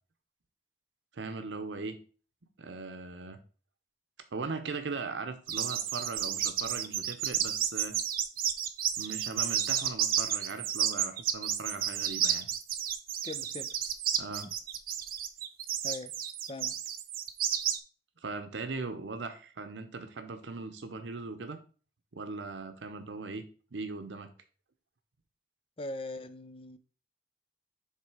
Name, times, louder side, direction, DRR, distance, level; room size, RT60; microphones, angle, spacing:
voice 1, 1.1-2.0 2.6-3.4 4.3-8.0 9.0-12.5 14.2-14.5 18.2-21.6 22.1-23.5 23.7-24.3, right 4 dB, 85° right, 0.7 m, -39 dB
sound 1, 5.5-17.8, right 10 dB, 50° right, 0.6 m, -31 dB
voice 2, 13.2-13.8 15.8-16.2 16.5-16.8 25.8-26.8, left 2 dB, 30° left, 0.5 m, -40 dB
7.5 x 3.3 x 4.8 m
head